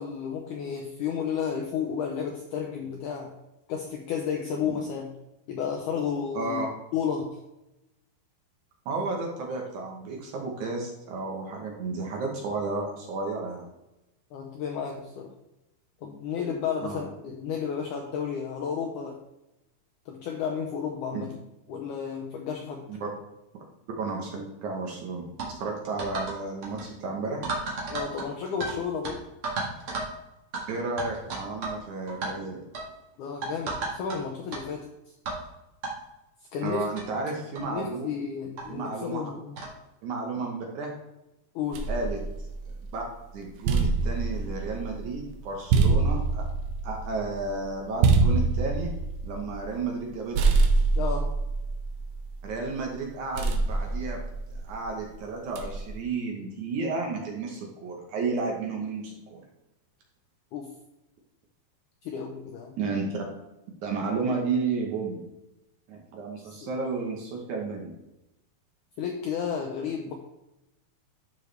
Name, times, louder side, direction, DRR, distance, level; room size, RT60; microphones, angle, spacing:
voice 1, 0.0-3.4 3.7-5.1 5.5-6.6 6.9-7.4 14.3-15.3 16.0-19.2 20.1-21.3 21.7-22.8 27.9-29.2 33.2-34.9 36.5-36.9 37.7-39.6 41.6-41.9 51.0-51.3 60.5-60.7 62.0-62.8 66.4-66.7 69.0-70.1, left 7 dB, 85° left, 1 dB, 1.7 m, -32 dB
voice 2, 6.3-6.7 8.9-13.6 16.8-17.0 21.1-21.3 22.9-23.1 24.0-27.4 30.7-32.6 36.6-38.1 38.7-39.2 40.0-40.9 41.9-42.2 42.9-43.0 43.3-46.5 46.8-48.9 49.2-50.4 52.4-54.2 54.6-59.4 62.8-63.2 63.8-65.2 65.9-67.9, right 3 dB, 65° right, 0 dB, 2.1 m, -32 dB
sound 1, 25.4-25.5 26.0-26.4 26.6-26.8 27.4-28.7 29.0-29.1 29.4-30.1 30.5-30.6 31.0-31.8 32.1-32.3 32.7-32.9 33.4-34.2 34.5-34.6 35.3-35.4 35.8-35.9 36.7-36.8 37.0-37.1 37.5-37.7 38.6-38.7 39.6-39.8, right 3 dB, 50° right, 1.9 m, -33 dB
sound 2, 41.7-43.0 43.4-50.1 50.3-52.6 53.3-54.8 55.5-56.0, right 4 dB, 80° right, 2.6 m, -26 dB
12.0 x 4.6 x 3.3 m, 0.92 s
omnidirectional pair, 4.4 m